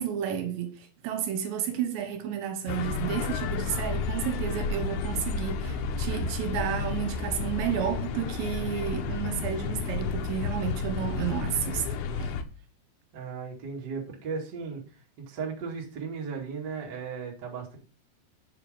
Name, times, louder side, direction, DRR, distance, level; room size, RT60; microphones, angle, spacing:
voice 1, 0.0-12.3, right 9 dB, 75° right, 3.0 m, -32 dB
sound 1, 2.7-12.4, left 5 dB, 90° left, 2.2 m, -31 dB
voice 2, 13.1-14.8 15.2-17.8, right 5 dB, 40° right, 1.5 m, -36 dB
7.6 x 5.8 x 5.1 m
omnidirectional pair, 5.4 m